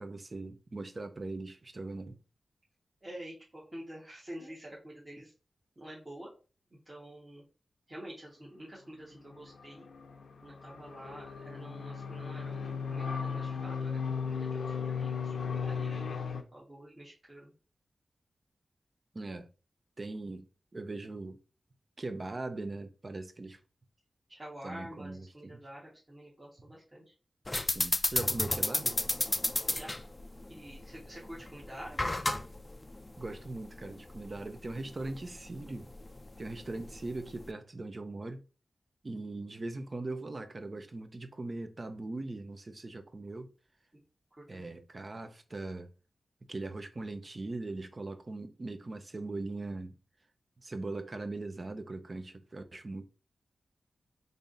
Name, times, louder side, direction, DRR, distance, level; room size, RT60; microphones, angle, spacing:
voice 1, 0.0-2.2 19.1-19.5 20.0-20.5 20.7-21.4 22.0-23.6 24.6-25.6 27.7-29.0 33.2-35.9 36.4-38.4 39.0-43.5 44.5-45.9 46.5-49.9 50.6-53.1, right 2 dB, 40° right, 0.6 m, -40 dB
voice 2, 3.0-5.3 5.7-6.3 6.8-7.4 7.9-9.8 10.4-17.5 24.3-27.1 29.6-29.9 30.5-32.1 44.3-44.6, right 1 dB, 25° right, 1.4 m, -48 dB
sound 1, 9.4-16.4, left 6 dB, 90° left, 0.6 m, -36 dB
sound 2, 27.5-37.5, left 2 dB, 25° left, 0.4 m, -34 dB
3.4 x 2.7 x 3.8 m
wide cardioid pair, 75°, 0 cm